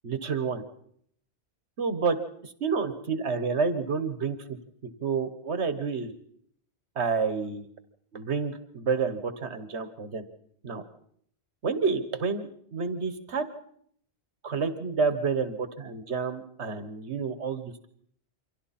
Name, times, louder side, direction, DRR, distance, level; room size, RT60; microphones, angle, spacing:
voice 1, 0.0-0.6 1.8-2.2 2.4-4.6 5.0-6.1 6.9-7.7 8.1-10.2 10.6-10.8 11.6-13.4 14.4-17.9, right 5 dB, 75° right, 10 dB, 1.6 m, -29 dB
28.5 x 24.0 x 4.3 m, 0.66 s
omnidirectional pair, 1.1 m